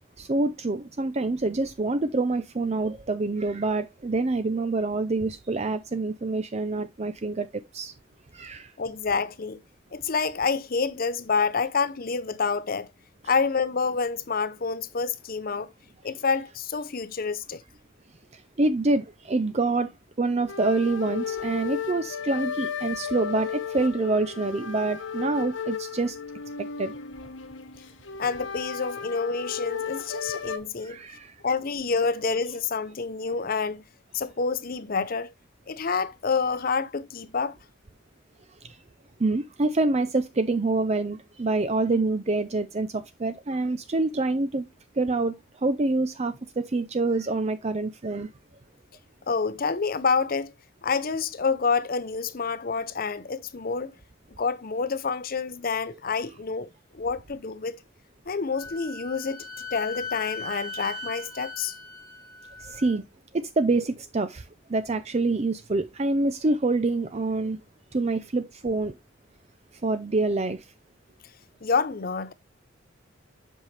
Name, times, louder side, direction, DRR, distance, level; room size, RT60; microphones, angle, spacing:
voice 1, 0.2-7.5 7.7-7.9 8.3-8.7 18.3-19.9 20.2-26.2 26.6-26.9 30.8-31.3 39.2-44.7 45.0-48.3 62.6-63.0 63.3-64.4 64.7-67.6 67.9-68.9 69.8-70.6, right 3 dB, 35° right, 0.5 m, -26 dB
voice 2, 8.8-9.6 9.9-12.9 13.2-15.7 16.0-17.6 28.2-31.0 31.4-33.8 34.1-35.3 35.7-37.6 49.3-50.5 50.8-53.9 54.4-57.8 58.3-61.8 71.6-72.3, left 5 dB, 45° left, 0.6 m, -28 dB
sound 1, 20.5-30.6, left 7 dB, 65° left, 1.0 m, -34 dB
Wind instrument woodwind instrument, 58.5-63.0, left 4 dB, 70° right, 2.1 m, -38 dB
7.7 x 5.6 x 3.3 m
head